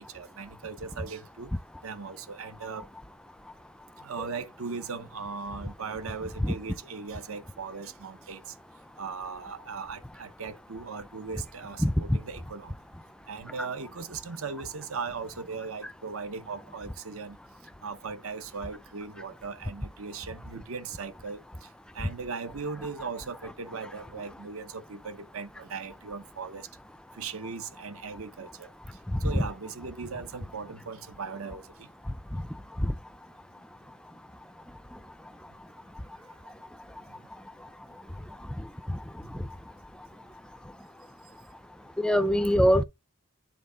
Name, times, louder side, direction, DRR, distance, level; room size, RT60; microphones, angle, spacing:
voice 1, 0.0-1.5 1.8-2.9 4.0-8.4 9.0-12.7 13.3-17.4 17.8-21.4 21.9-26.7 27.1-28.7 29.2-31.7 39.4-39.5, right 5 dB, 70° right, 0.8 m, -38 dB
voice 2, 42.0-42.8, equal, 5° left, 0.3 m, -22 dB
7.7 x 3.6 x 3.8 m
head